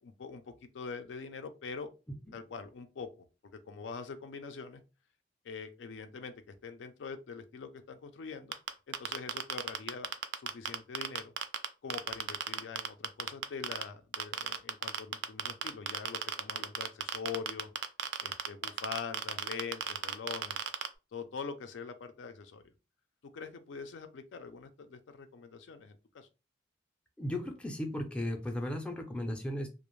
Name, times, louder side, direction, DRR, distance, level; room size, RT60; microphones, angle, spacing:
voice 1, 0.0-1.9 2.3-3.1 3.4-4.8 5.4-8.6 8.9-10.1 10.3-11.3 11.8-17.7 18.2-20.6 21.1-22.7 23.3-26.3, left 5 dB, 80° left, 8 dB, 0.4 m, -43 dB
sound 1, 8.5-11.7 11.9-13.8 14.1-20.9, right 9 dB, 65° right, 0.3 m, -33 dB
voice 2, 27.2-29.7, left 1 dB, 5° left, 2 dB, 0.4 m, -35 dB
2.4 x 2.0 x 3.0 m, 0.30 s
head